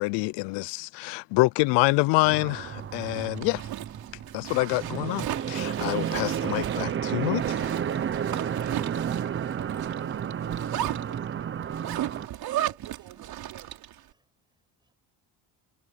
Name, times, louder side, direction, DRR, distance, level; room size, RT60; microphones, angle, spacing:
voice 1, 0.0-3.6 4.3-7.7, left 24 dB, 85° left, 0.6 m, -26 dB
sound 1, 2.2-12.3, right 8 dB, 30° right, 0.8 m, -31 dB
Zipper (clothing), 2.8-14.0, right 13 dB, 60° right, 4.2 m, -36 dB
voice 2, 9.0-11.8 12.8-13.8, right 16 dB, 75° right, 4.6 m, -51 dB
voice 3, 12.5-13.3 14.1-14.9, right 2 dB, 10° right, 7.2 m, -60 dB
cardioid pair, 130°, 41 cm